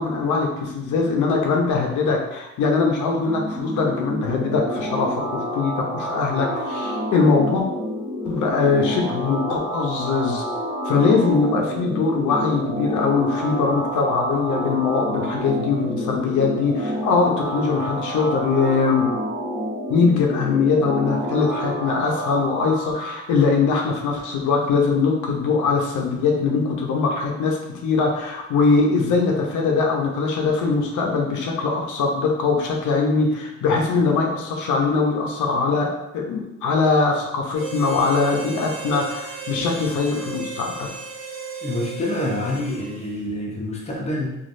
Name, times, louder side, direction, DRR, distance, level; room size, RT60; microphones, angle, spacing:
voice 1, 0.0-7.6 8.2-10.4 10.8-19.1 19.9-40.9, left 4 dB, 80° left, 0 dB, 0.6 m, -21 dB
sound 1, 3.2-23.2, equal, 20° right, 1.0 m, -29 dB
Harmonica, 37.5-43.2, right 4 dB, 45° right, 0.6 m, -35 dB
voice 2, 41.6-44.4, left 1 dB, 20° left, -2 dB, 0.7 m, -27 dB
3.1 x 2.4 x 2.5 m, 0.90 s
cardioid pair, 90°, 30 cm